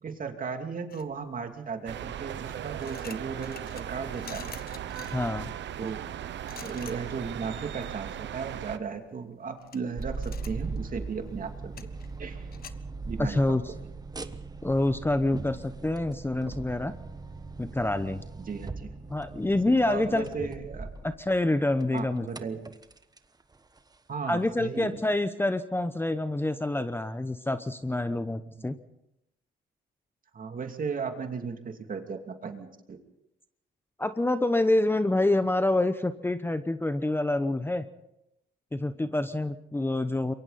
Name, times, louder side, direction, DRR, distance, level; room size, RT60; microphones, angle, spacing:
voice 1, 0.0-4.5 5.8-6.0 6.6-11.9 12.2-12.5 13.0-13.6 18.5-18.9 19.9-20.9 21.9-22.6 24.1-25.0 30.3-33.0, right 5 dB, 45° right, 5 dB, 2.8 m, -36 dB
sound 1, 0.9-1.7 2.4-12.7, left 7 dB, 50° left, 1.3 m, -49 dB
sound 2, 1.9-8.8, right 10 dB, 65° right, 1.0 m, -38 dB
voice 2, 5.1-5.5 13.2-13.7 14.6-16.9 17.6-18.2 19.1-20.5 21.2-22.3 24.3-28.8 34.0-37.9 38.7-40.3, left 2 dB, 10° left, 10 dB, 0.9 m, -27 dB
sound 3, 10.0-21.5 21.8-23.2 23.5-23.8 24.5-24.6 25.0-25.1, right 4 dB, 20° right, 1.2 m, -39 dB
27.5 x 23.0 x 4.2 m, 0.83 s
cardioid pair, 90°, 20 cm